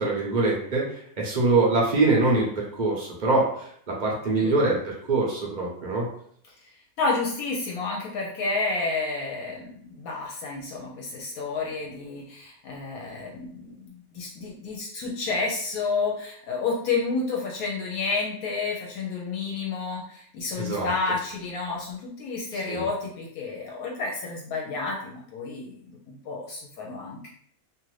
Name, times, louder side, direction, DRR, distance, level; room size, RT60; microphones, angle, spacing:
voice 1, 0.0-6.1 20.6-20.9 22.5-22.9, right 2 dB, 40° right, -3 dB, 0.7 m, -24 dB
voice 2, 7.0-27.3, left 4 dB, 75° left, -2 dB, 1.0 m, -30 dB
2.7 x 2.5 x 3.1 m, 0.62 s
omnidirectional pair, 1.6 m